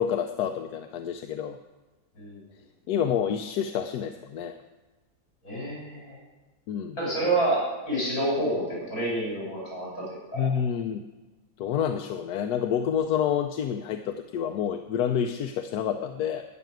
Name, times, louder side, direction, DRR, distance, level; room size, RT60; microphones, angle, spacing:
voice 1, 0.0-1.6 2.9-4.6 6.7-7.0 10.3-11.0 11.6-16.4, left 8 dB, 90° left, 7 dB, 1.2 m, -28 dB
voice 2, 5.4-6.2 7.0-10.5, right 1 dB, 65° left, -4 dB, 6.2 m, -28 dB
12.5 x 6.2 x 9.1 m, 1.2 s
omnidirectional pair, 1.6 m